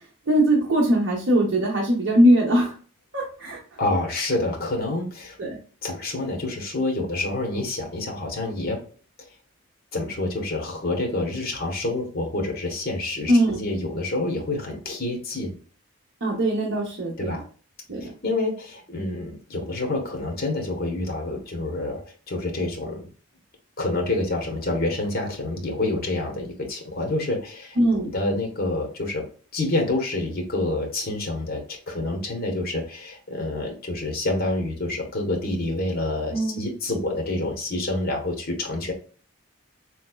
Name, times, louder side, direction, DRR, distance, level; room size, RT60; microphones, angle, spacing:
voice 1, 0.3-2.7 3.1-3.6 5.4-5.6 13.3-13.6 16.2-17.3 17.9-18.0 27.8-28.1 36.3-36.6, right 1 dB, 60° right, -3 dB, 0.8 m, -21 dB
voice 2, 3.8-5.4 5.8-8.8 9.9-13.3 13.6-15.5 17.2-17.4 18.0-23.1 23.8-27.8 28.1-29.2 29.5-38.9, left 2 dB, 45° left, 1 dB, 0.9 m, -27 dB
4.2 x 3.1 x 2.3 m, 0.41 s
head